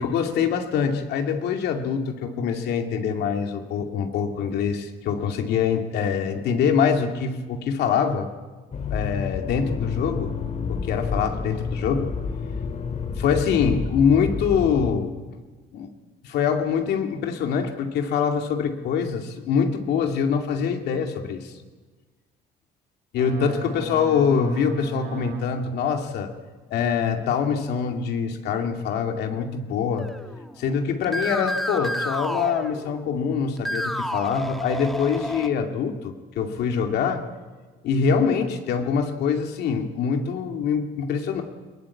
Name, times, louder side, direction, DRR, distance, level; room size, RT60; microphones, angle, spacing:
voice 1, 0.0-8.3 8.9-10.3 10.7-12.1 13.2-15.1 15.7-15.9 16.2-21.5 23.1-26.3 26.7-30.1 30.6-37.2 37.8-41.4, left 6 dB, 75° left, 4 dB, 2.5 m, -24 dB
Accelerating revving vroom, 8.7-14.9, left 5 dB, 45° left, 2.4 m, -29 dB
Boat Water vehicle, 23.2-25.9, right 4 dB, 70° right, 4.7 m, -37 dB
sound 1, 30.0-30.7 31.0-33.2 33.6-35.5, equal, ahead, 1.6 m, -30 dB
21.0 x 19.5 x 8.5 m, 1.3 s
cardioid pair, 110°, 17 cm